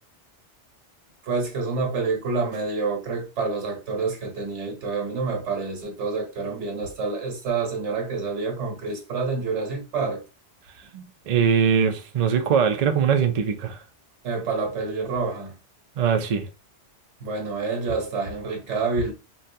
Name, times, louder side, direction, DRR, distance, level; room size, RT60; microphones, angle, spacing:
voice 1, 1.2-10.2 14.2-15.6 17.2-19.1, right 4 dB, 80° right, 1.3 m, -28 dB
voice 2, 10.9-13.8 16.0-16.5, right 7 dB, 60° right, 0.4 m, -22 dB
4.0 x 2.2 x 2.6 m
omnidirectional pair, 1.2 m